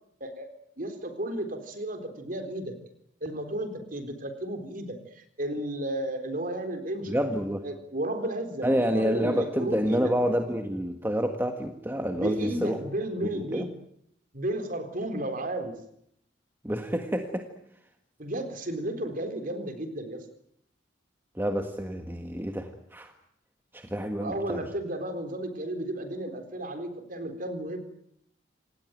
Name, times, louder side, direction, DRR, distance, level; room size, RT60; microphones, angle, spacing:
voice 1, 0.8-2.8 3.2-7.2 7.6-10.1 12.1-13.7 14.3-15.7 18.2-20.2 24.2-27.8, right 1 dB, 45° right, 8 dB, 3.9 m, -33 dB
voice 2, 7.1-7.6 8.6-12.8 13.3-13.6 16.6-17.5 21.4-23.1 23.7-24.6, equal, 10° right, 5 dB, 1.6 m, -28 dB
27.5 x 19.5 x 9.3 m, 0.74 s
head